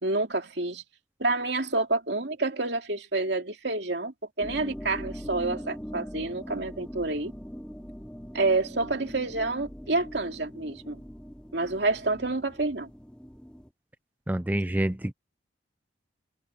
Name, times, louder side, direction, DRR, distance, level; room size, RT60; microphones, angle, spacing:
voice 1, 0.0-0.8 1.2-7.3 8.3-11.0 11.5-12.9, right 2 dB, 70° right, 2.7 m, -28 dB
sound 1, 4.4-13.7, equal, 5° left, 2.7 m, -42 dB
voice 2, 14.3-15.1, right 1 dB, 10° right, 0.5 m, -27 dB
head